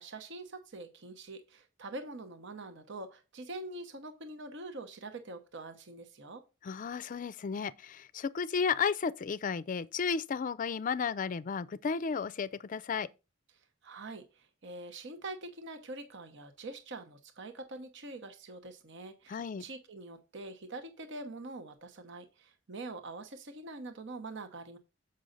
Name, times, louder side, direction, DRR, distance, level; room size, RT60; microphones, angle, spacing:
voice 1, 0.0-6.4 13.8-24.8, right 2 dB, 65° right, 1.0 m, -44 dB
voice 2, 6.6-13.1 19.3-19.6, left 6 dB, 40° left, 0.4 m, -33 dB
7.6 x 5.5 x 3.9 m
head